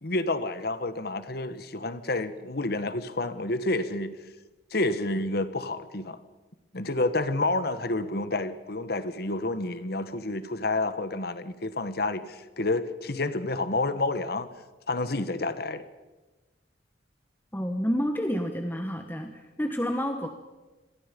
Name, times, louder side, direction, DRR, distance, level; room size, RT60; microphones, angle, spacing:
voice 1, 0.0-4.2 4.7-6.2 6.7-14.5 14.9-15.8, left 2 dB, 55° left, 1.4 m, -29 dB
voice 2, 17.5-20.3, equal, 10° left, 1.4 m, -29 dB
28.5 x 22.0 x 5.3 m
head